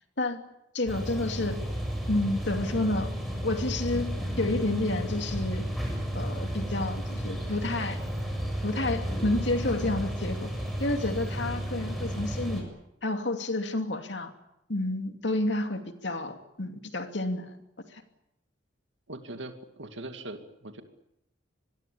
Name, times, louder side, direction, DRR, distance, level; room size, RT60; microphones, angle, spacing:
voice 1, 0.7-1.6 2.1-3.1 3.4-5.6 6.1-8.0 8.6-10.5 10.8-12.7 13.0-14.3 14.7-17.6 17.9-18.0, left 2 dB, 65° left, 6 dB, 2.7 m, -30 dB
sound 1, 0.9-12.6, equal, ahead, 7.5 m, -33 dB
voice 2, 19.1-20.8, right 2 dB, 75° right, 6 dB, 2.4 m, -41 dB
26.5 x 21.5 x 8.6 m, 0.83 s
head